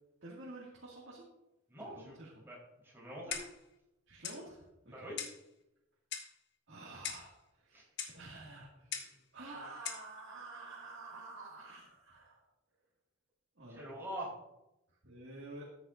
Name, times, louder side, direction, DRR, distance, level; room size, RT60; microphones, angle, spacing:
voice 1, 0.2-1.3 1.8-2.5 4.1-5.1 6.7-7.9 8.1-12.4 13.6-13.8 14.9-15.7, right 2 dB, 60° right, -4 dB, 2.1 m, -50 dB
voice 2, 1.7-2.1 2.5-2.6 2.8-3.4 4.9-5.2 7.7-7.8 13.7-14.3, right 1 dB, 10° right, -5 dB, 3.9 m, -44 dB
Clock, 3.3-3.7 4.2-4.4 5.2-5.4 6.1-6.4 7.0-7.3 8.0-8.2 8.9-9.2 9.8-10.1, left 7 dB, 55° left, 1.3 m, -41 dB
13.5 x 9.9 x 2.6 m, 0.92 s
head